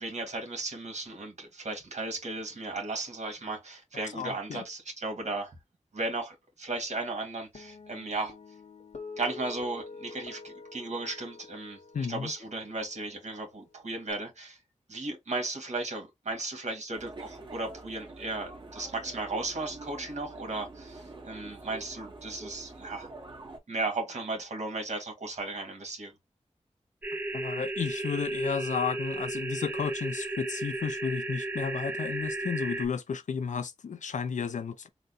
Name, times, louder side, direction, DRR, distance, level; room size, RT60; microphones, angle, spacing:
voice 1, 0.0-5.6 5.9-8.3 9.2-14.6 14.9-23.1 23.7-26.1, right 2 dB, 70° right, 1.8 m, -35 dB
voice 2, 4.1-4.6 11.9-12.3 27.3-34.9, left 6 dB, 90° left, 0.6 m, -33 dB
Guitar, 7.6-14.1, left 4 dB, 70° left, 1.1 m, -47 dB
sound 1, 16.9-23.6, right 2 dB, 40° right, 1.4 m, -46 dB
sound 2, 27.0-32.9, right 2 dB, 15° right, 0.6 m, -34 dB
3.9 x 2.2 x 4.0 m
wide cardioid pair, 75°, 12 cm